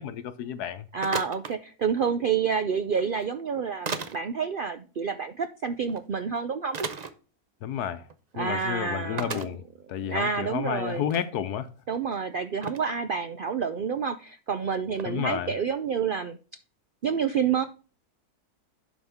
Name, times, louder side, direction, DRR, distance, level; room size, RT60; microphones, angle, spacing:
voice 1, 0.0-0.9 7.6-8.1 8.3-9.6 9.9-11.7 15.0-15.5, left 9 dB, 85° left, 1.3 m, -31 dB
voice 2, 0.9-6.8 8.3-9.5 9.9-11.0 11.9-16.6 17.0-17.7, right 6 dB, 80° right, 0.4 m, -29 dB
sound 1, 1.0-1.5 2.9-3.0 3.9-4.2 5.9-6.0 6.7-7.1 8.0-8.1 8.4-8.5 9.2-9.5 10.2-10.3 10.7-11.3 11.9-12.0 12.6-12.9 14.9-15.1, right 4 dB, 40° right, 0.6 m, -34 dB
11.0 x 5.1 x 3.5 m
omnidirectional pair, 1.6 m